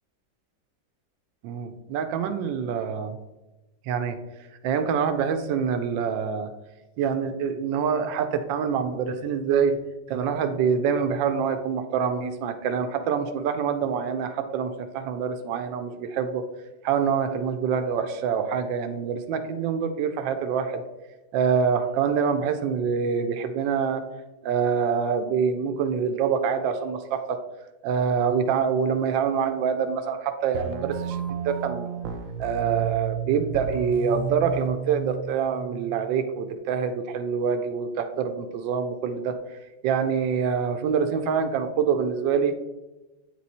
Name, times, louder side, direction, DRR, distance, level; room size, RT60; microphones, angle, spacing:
voice 1, 1.4-3.2 3.8-4.2 4.6-6.5 7.0-9.8 10.1-16.4 16.8-20.8 21.3-24.0 24.4-27.4 27.8-31.9 32.4-42.5, right 6 dB, 85° right, 8 dB, 1.3 m, -25 dB
sound 1, 30.5-36.6, right 8 dB, 65° right, 0.8 m, -32 dB
8.5 x 3.0 x 4.1 m, 1.1 s
omnidirectional pair, 2.0 m